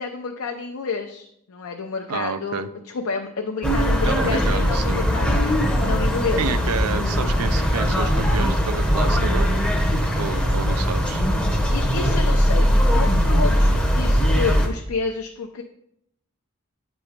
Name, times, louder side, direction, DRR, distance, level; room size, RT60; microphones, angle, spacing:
voice 1, 0.0-5.5 5.8-6.6 11.7-15.6, left 4 dB, 70° left, 3 dB, 0.5 m, -29 dB
voice 2, 2.1-2.7 4.0-5.0 6.4-9.6 10.2-11.2, right 5 dB, 90° right, 12 dB, 0.5 m, -29 dB
sound 1, 3.6-14.7, equal, 5° left, 0.7 m, -20 dB
8.6 x 3.0 x 5.0 m, 0.74 s
head